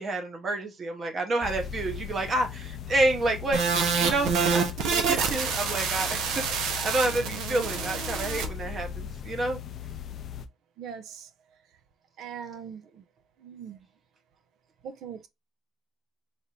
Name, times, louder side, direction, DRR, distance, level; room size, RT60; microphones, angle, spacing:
voice 1, 0.0-9.6, right 2 dB, 30° right, 0.8 m, -29 dB
sound 1, 1.4-10.5, left 9 dB, 40° left, 0.4 m, -38 dB
sound 2, 3.5-8.5, right 5 dB, 90° right, 0.8 m, -27 dB
voice 2, 10.8-11.3 12.2-13.0 13.4-13.9 14.8-15.3, right 7 dB, 65° right, 0.5 m, -41 dB
3.3 x 2.6 x 4.2 m
cardioid pair, 170°, 0 cm